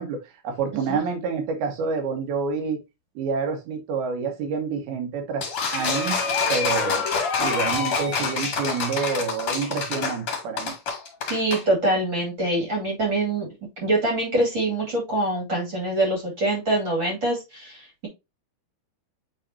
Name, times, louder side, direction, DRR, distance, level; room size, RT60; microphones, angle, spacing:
voice 1, 0.0-2.8 3.2-7.0 7.4-10.7, right 5 dB, 75° right, 3.4 m, -28 dB
sound 1, 5.4-11.6, left 5 dB, 45° left, 2.3 m, -26 dB
voice 2, 11.3-13.5 13.8-18.1, right 1 dB, 35° right, 2.4 m, -24 dB
9.3 x 3.8 x 2.7 m
omnidirectional pair, 4.6 m